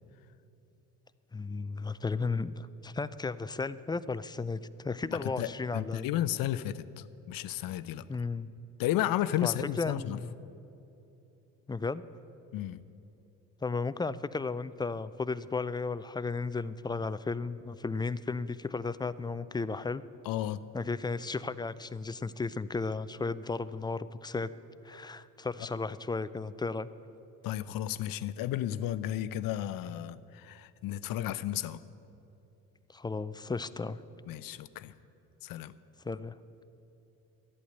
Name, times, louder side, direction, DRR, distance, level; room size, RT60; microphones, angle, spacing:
voice 1, 1.3-6.1 8.1-8.5 9.4-10.3 11.7-12.0 13.6-20.0 20.7-24.5 24.8-26.9 32.9-34.0 36.0-36.3, left 4 dB, 10° left, 15 dB, 0.4 m, -34 dB
voice 2, 5.0-8.1 8.8-10.2 12.5-12.8 20.2-20.6 27.4-31.8 34.3-34.9 35.4-35.7, left 12 dB, 65° left, 15 dB, 0.6 m, -33 dB
12.5 x 8.6 x 7.8 m, 2.9 s
supercardioid pair, 70°, 37 cm